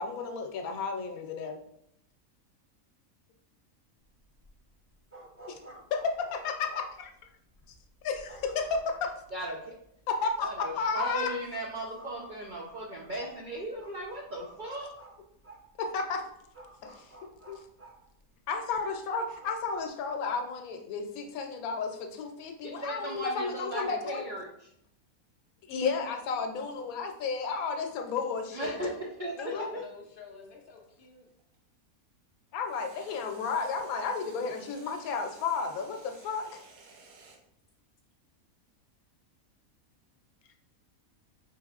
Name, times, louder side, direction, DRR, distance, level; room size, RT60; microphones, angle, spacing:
voice 1, 0.0-1.6 5.5-5.6 5.9-7.1 8.0-9.1 10.1-11.3 15.8-16.2 16.8-17.6 18.5-24.2 25.7-28.8 29.4-29.7 32.5-36.6, left 5 dB, 85° left, 5 dB, 1.1 m, -33 dB
sound 1, 4.0-19.9, right 2 dB, 15° right, 0.6 m, -53 dB
voice 2, 9.3-9.7 10.4-14.9 22.6-24.7 28.5-29.3 29.7-29.8, right 1 dB, 70° right, -2 dB, 0.4 m, -37 dB
sound 2, 26.4-31.6 32.6-37.4, right 4 dB, 90° right, 1.2 m, -56 dB
voice 3, 29.4-31.3, left 5 dB, 65° left, 1 dB, 0.5 m, -48 dB
4.6 x 3.4 x 2.4 m, 0.74 s
omnidirectional pair, 1.5 m